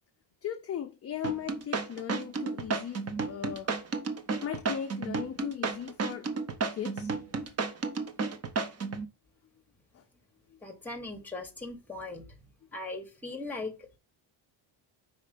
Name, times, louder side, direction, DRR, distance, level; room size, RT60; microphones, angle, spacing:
voice 1, 0.4-3.7 4.4-6.3 6.7-7.5 9.9-10.0, left 9 dB, 30° left, 0.5 m, -38 dB
sound 1, 1.2-9.1, right 4 dB, 30° right, 0.7 m, -32 dB
voice 2, 10.6-12.3 12.7-14.0, left 2 dB, 5° left, 1.0 m, -39 dB
5.2 x 4.3 x 5.0 m
cardioid pair, 165°, 48 cm